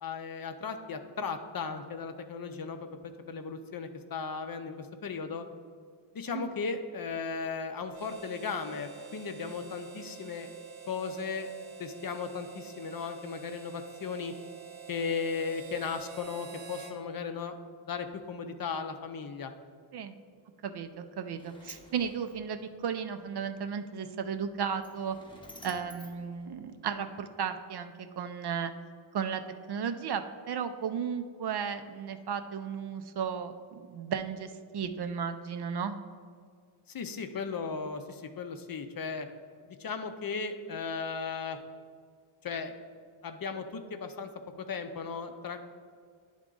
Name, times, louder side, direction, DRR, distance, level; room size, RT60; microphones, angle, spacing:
voice 1, 0.0-5.4 6.1-10.5 10.9-11.5 11.8-14.3 14.9-17.5 17.8-19.5 36.9-39.3 39.7-41.6 42.4-42.7 43.2-44.3 44.6-45.6, left 5 dB, 45° left, 7 dB, 0.6 m, -36 dB
Harmonica, 7.9-17.0, right 7 dB, 85° right, 0.8 m, -47 dB
voice 2, 20.6-25.2 25.6-28.7 29.1-29.4 29.7-35.9, right 7 dB, 55° right, 8 dB, 0.5 m, -34 dB
Sliding door, 20.8-27.2, left 1 dB, 10° left, 0.8 m, -55 dB
10.0 x 3.6 x 3.8 m, 2.1 s
wide cardioid pair, 85°, 49 cm